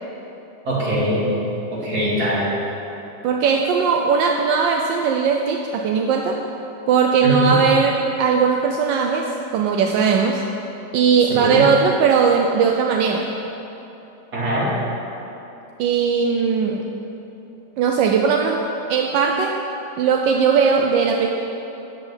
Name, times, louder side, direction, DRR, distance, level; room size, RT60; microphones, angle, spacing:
voice 1, 0.7-1.3 1.7-2.5 7.2-7.5 11.3-11.6 14.3-14.7, equal, 55° right, -7 dB, 3.2 m, -22 dB
voice 2, 3.2-6.4 6.9-10.4 10.9-13.3 15.8-16.9 17.8-19.6 20.0-21.3, right 6 dB, 80° right, 2 dB, 1.4 m, -19 dB
12.5 x 4.8 x 8.7 m, 3.0 s
omnidirectional pair, 2.0 m